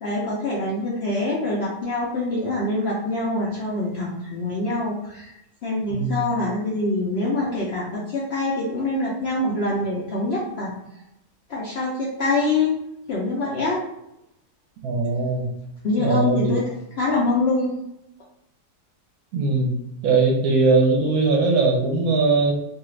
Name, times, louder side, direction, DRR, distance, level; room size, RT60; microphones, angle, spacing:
voice 1, 0.0-5.4 5.6-10.7 11.5-12.8 13.1-13.8 15.8-16.6 17.0-17.7, left 2 dB, 65° left, -5 dB, 0.6 m, -25 dB
voice 2, 5.9-6.3 14.8-15.5 16.0-16.5 19.3-19.7 20.0-22.5, right 3 dB, 70° right, 1 dB, 1.0 m, -20 dB
2.7 x 2.4 x 3.0 m, 0.83 s
omnidirectional pair, 1.6 m